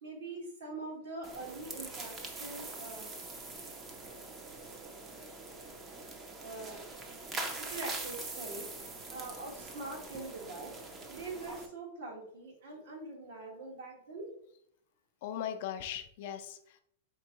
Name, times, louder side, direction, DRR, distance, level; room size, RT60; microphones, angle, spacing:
voice 1, 0.0-3.1 6.4-6.8 7.7-10.7 11.1-14.3, right 2 dB, 75° right, 0 dB, 1.6 m, -43 dB
sound 1, 1.2-11.7, right 3 dB, 20° right, 0.5 m, -43 dB
voice 2, 15.2-16.8, left 10 dB, 55° left, 8 dB, 0.5 m, -39 dB
4.5 x 3.3 x 3.0 m, 0.69 s
supercardioid pair, 155°, 0 cm